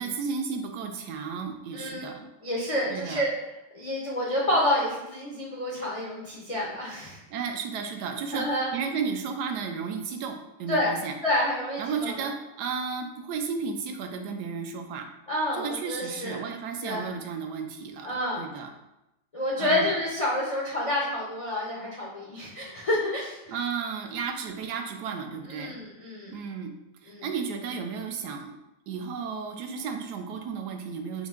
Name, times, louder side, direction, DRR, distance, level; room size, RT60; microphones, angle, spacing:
voice 1, 0.0-2.3 2.9-3.2 7.3-11.1 11.8-15.1 15.5-18.7 19.6-19.9 23.5-25.7 26.3-26.7 27.0-28.5 28.9-31.3, right 5 dB, 85° right, 4 dB, 1.2 m, -33 dB
voice 2, 1.7-2.1 2.4-3.3 3.7-7.2 8.3-8.7 10.7-10.9 11.2-12.3 15.3-16.4 16.8-17.1 18.0-18.4 19.3-23.5 25.5-26.4 27.1-27.2, left 1 dB, 60° left, -5 dB, 0.3 m, -28 dB
5.5 x 2.1 x 3.5 m, 0.92 s
omnidirectional pair, 1.7 m